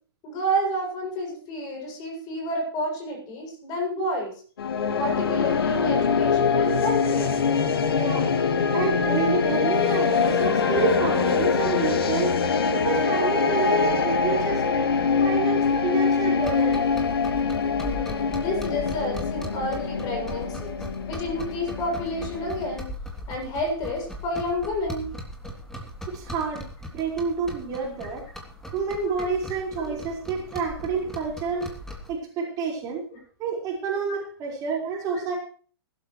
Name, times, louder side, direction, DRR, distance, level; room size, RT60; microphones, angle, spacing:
voice 1, 0.2-4.3 5.0-7.3 11.9-12.1 14.5-14.6 16.2-16.3 17.8-20.8 21.1-22.9 23.3-25.1 29.2-29.3 29.8-29.9 34.1-34.2 35.1-35.3, equal, 30° left, 2 dB, 7.4 m, -30 dB
sound 1, 4.6-22.8, left 5 dB, 65° left, 2.0 m, -24 dB
voice 2, 7.9-8.3 8.7-12.4 12.7-14.6 15.2-16.8 26.1-26.7 26.9-28.2 28.7-31.7 32.1-33.0 33.4-35.3, right 4 dB, 25° right, -2 dB, 5.0 m, -28 dB
sound 2, 16.4-32.1, left 1 dB, 5° left, 3.0 m, -39 dB
20.5 x 12.5 x 3.2 m, 0.42 s
figure-of-eight pair, 120°, 13 cm